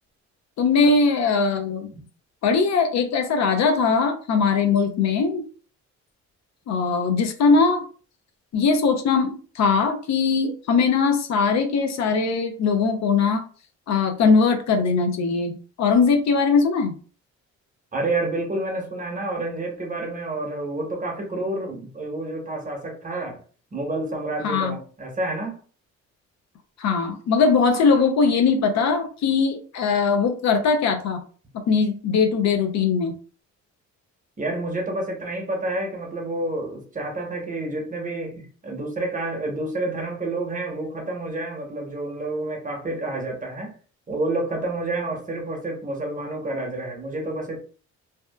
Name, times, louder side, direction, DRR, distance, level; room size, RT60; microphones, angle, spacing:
voice 1, 0.6-1.9 2.4-5.5 6.7-7.9 8.5-13.4 13.9-16.9 24.4-24.8 26.8-31.2 31.7-33.1, left 5 dB, 65° left, 0.6 m, -20 dB
voice 2, 17.9-23.4 23.7-25.6 34.4-43.7 44.1-47.6, right 2 dB, 25° right, 0.9 m, -29 dB
2.7 x 2.2 x 2.2 m
cardioid pair, 90°, 30 cm